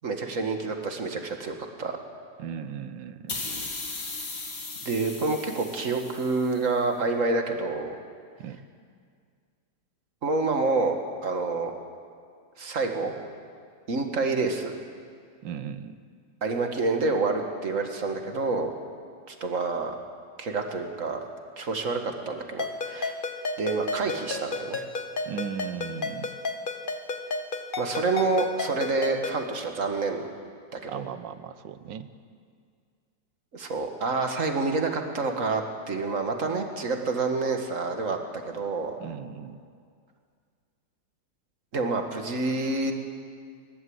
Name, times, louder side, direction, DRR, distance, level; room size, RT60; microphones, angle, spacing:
voice 1, 0.0-2.0 4.9-8.0 10.2-11.7 12.6-13.1 13.9-14.7 16.4-18.7 19.3-19.9 20.4-21.2 21.6-23.1 23.6-24.8 27.8-30.3 30.7-31.0 33.5-35.6 35.9-38.2 38.5-39.0 41.7-42.9, right 3 dB, 45° right, 4 dB, 2.0 m, -28 dB
voice 2, 2.4-3.7 8.4-8.6 15.4-15.9 25.3-26.3 30.9-32.1 39.0-39.7, right 8 dB, 80° right, 12 dB, 1.5 m, -37 dB
sound 1, 3.3-6.7, left 3 dB, 65° left, 3.0 m, -37 dB
Ringtone, 22.6-29.5, left 3 dB, 35° left, 0.9 m, -33 dB
29.0 x 12.0 x 8.0 m, 2.1 s
omnidirectional pair, 2.0 m